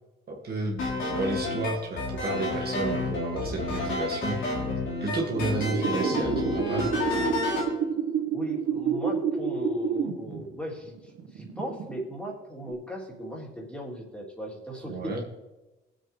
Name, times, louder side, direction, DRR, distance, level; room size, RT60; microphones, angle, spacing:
voice 1, 0.3-4.4 5.0-6.9 14.9-15.2, right 2 dB, 50° right, -1 dB, 2.3 m, -31 dB
sound 1, 0.8-7.7, left 2 dB, 80° left, 3.6 m, -30 dB
sound 2, 4.9-10.5 10.9-12.1 12.6-12.7, right 6 dB, 80° right, 1.6 m, -29 dB
voice 2, 8.3-15.2, right 1 dB, 5° left, -3 dB, 3.5 m, -37 dB
19.0 x 7.8 x 3.4 m, 1.0 s
cardioid pair, 90°, 20 cm